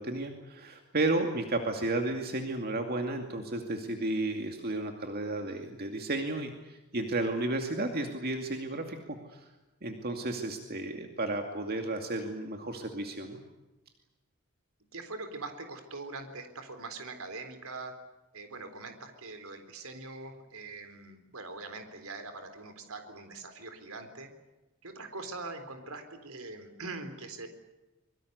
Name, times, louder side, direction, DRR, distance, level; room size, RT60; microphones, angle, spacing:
voice 1, 0.0-9.0 9.3-9.5 9.8-13.4, right 2 dB, 45° right, 4 dB, 2.4 m, -33 dB
voice 2, 14.9-17.9 18.3-24.3 24.8-27.5, right 3 dB, 80° right, 8 dB, 3.9 m, -42 dB
25.5 x 23.0 x 8.1 m, 1.1 s
head